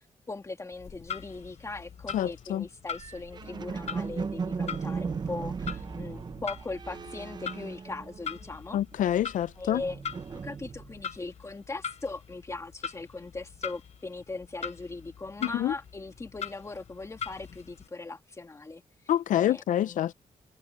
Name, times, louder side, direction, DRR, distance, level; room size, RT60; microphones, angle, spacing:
voice 1, 0.0-8.8 9.6-10.0 10.3-18.8 19.4-20.1, left 3 dB, 20° left, 1.9 m, -39 dB
Clock, 0.7-17.9, left 7 dB, 55° left, 1.0 m, -42 dB
voice 2, 2.1-2.7 8.7-9.8 15.4-15.7 19.1-20.1, left 11 dB, 80° left, 0.4 m, -27 dB
sound 1, 2.9-8.5 8.8-11.1, right 5 dB, 35° right, 0.6 m, -37 dB
wide cardioid pair, 135°, 13 cm